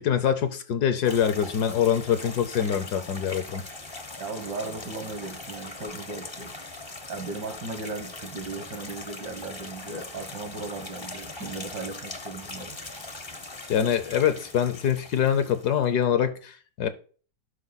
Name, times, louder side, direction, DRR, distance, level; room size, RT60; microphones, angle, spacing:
voice 1, 0.0-3.6 13.7-16.9, left 9 dB, 65° left, 1.2 m, -24 dB
sound 1, 1.0-15.8, left 2 dB, 25° left, 0.6 m, -41 dB
voice 2, 4.2-6.5 7.1-12.8, right 3 dB, 65° right, 2.0 m, -36 dB
11.5 x 5.1 x 4.0 m
omnidirectional pair, 2.0 m